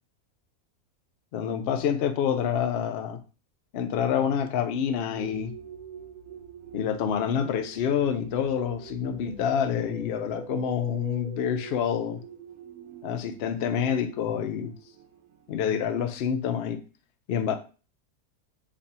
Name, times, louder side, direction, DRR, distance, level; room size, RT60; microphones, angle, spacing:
voice 1, 1.3-3.2 3.7-5.5 6.7-12.2 13.0-14.7 15.5-16.8 17.3-17.6, left 8 dB, 70° left, 7 dB, 0.5 m, -27 dB
sound 1, 5.1-16.2, right 7 dB, 85° right, 1.2 m, -45 dB
3.2 x 2.5 x 4.1 m, 0.35 s
omnidirectional pair, 1.6 m